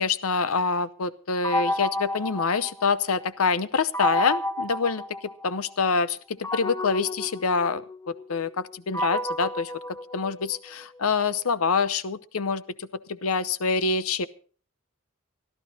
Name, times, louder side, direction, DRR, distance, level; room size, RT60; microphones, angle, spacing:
voice 1, 0.0-9.7 10.1-14.3, left 4 dB, 85° left, 16 dB, 0.8 m, -26 dB
sound 1, 1.4-3.3 3.9-5.7 6.4-10.7, left 1 dB, 15° left, 0.8 m, -31 dB
25.0 x 12.5 x 2.8 m, 0.41 s
head